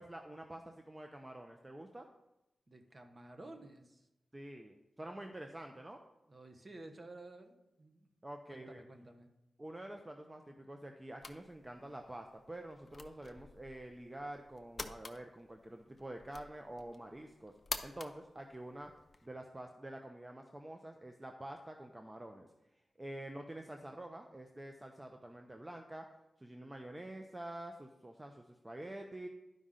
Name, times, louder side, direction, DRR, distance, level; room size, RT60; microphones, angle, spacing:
voice 1, 0.0-2.1 4.3-6.0 8.2-8.8 9.6-17.5 17.8-18.9 19.2-22.5 23.0-26.1 26.4-29.3, right 1 dB, 20° right, 4 dB, 0.6 m, -47 dB
voice 2, 2.7-4.1 6.3-8.1 8.5-9.3, right 2 dB, 35° right, 5 dB, 1.1 m, -53 dB
sound 1, 11.2-19.3, left 3 dB, 45° left, 0.6 m, -49 dB
11.0 x 5.2 x 3.8 m, 0.92 s
cardioid pair, 70°, 0 cm